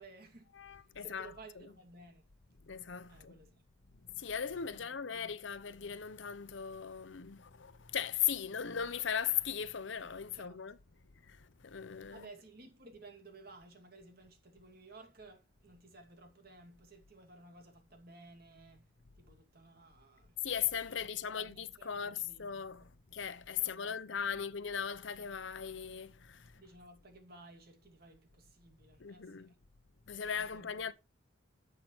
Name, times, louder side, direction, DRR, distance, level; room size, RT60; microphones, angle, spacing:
voice 1, 0.0-2.3 3.1-3.6 4.7-5.4 10.3-10.6 12.1-18.9 19.1-20.4 20.9-22.9 23.6-24.5 26.6-29.5 30.3-30.7, right 2 dB, 50° right, 2.4 m, -56 dB
voice 2, 0.6-1.7 2.6-3.4 4.1-10.8 11.2-12.3 20.4-26.6 29.0-29.5 30.1-30.9, left 8 dB, 70° left, 0.8 m, -38 dB
10.5 x 7.5 x 3.1 m
head